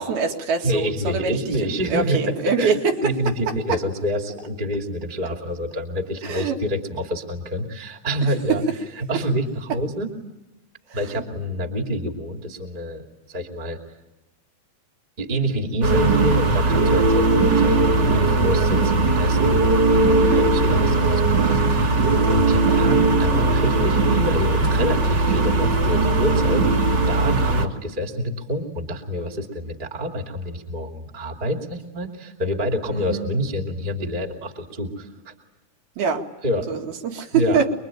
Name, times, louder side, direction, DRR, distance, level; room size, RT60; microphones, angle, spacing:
voice 1, 0.0-3.1 3.7-3.8 6.2-6.6 8.2-8.6 10.9-11.2 20.3-20.5 22.5-22.8 32.9-33.3 36.0-36.3 36.7-37.7, right 6 dB, 70° right, 1 dB, 4.0 m, -25 dB
voice 2, 0.6-8.6 9.0-10.1 10.9-13.0 13.3-13.8 15.2-19.7 20.0-26.7 27.1-35.3 36.4-36.7 37.3-37.6, equal, 15° right, 3 dB, 2.2 m, -27 dB
sound 1, 15.8-27.7, right 3 dB, 35° right, 2.4 m, -19 dB
26.0 x 23.0 x 9.1 m, 1.0 s
omnidirectional pair, 4.6 m